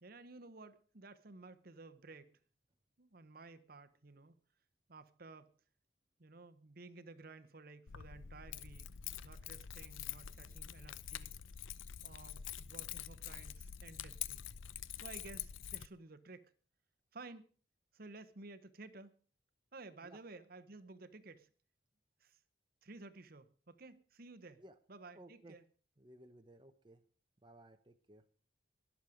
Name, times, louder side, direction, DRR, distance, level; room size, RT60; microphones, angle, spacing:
voice 1, 0.0-2.4 3.0-4.3 4.9-5.5 6.2-9.0 9.2-11.4 12.0-14.5 14.9-16.5 17.1-17.5 17.9-19.2 19.7-21.5 22.2-22.4 22.8-24.6 24.9-25.6, right 3 dB, 50° right, 0.9 m, -54 dB
Keys jangling, 7.9-15.9, left 10 dB, 85° left, 0.6 m, -46 dB
voice 2, 25.1-25.6 26.0-27.0 27.4-28.2, right 1 dB, 25° right, 0.8 m, -58 dB
21.5 x 7.4 x 5.0 m
head